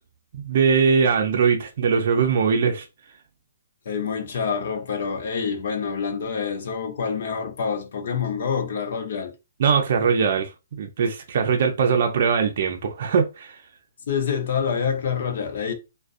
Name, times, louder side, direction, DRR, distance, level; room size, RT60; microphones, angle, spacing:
voice 1, 0.3-2.8 9.6-10.5 10.8-13.5, right 6 dB, 55° right, 0.5 m, -21 dB
voice 2, 3.9-9.3 14.1-15.7, left 6 dB, 60° left, 0.6 m, -27 dB
2.3 x 2.2 x 2.5 m
hypercardioid pair, 145°, 0 cm